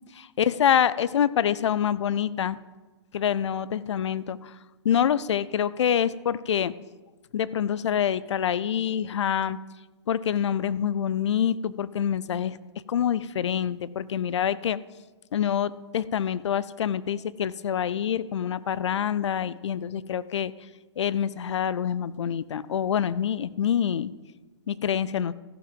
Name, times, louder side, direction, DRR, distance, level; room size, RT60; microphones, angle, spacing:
voice 1, 0.4-2.6 3.1-4.5 4.8-6.7 7.3-9.6 10.1-12.6 12.9-14.8 15.3-20.5 21.0-24.1 24.7-25.3, left 9 dB, 80° left, 18 dB, 0.4 m, -26 dB
14.5 x 5.9 x 5.2 m, 1.2 s
hypercardioid pair, 135°, 15 cm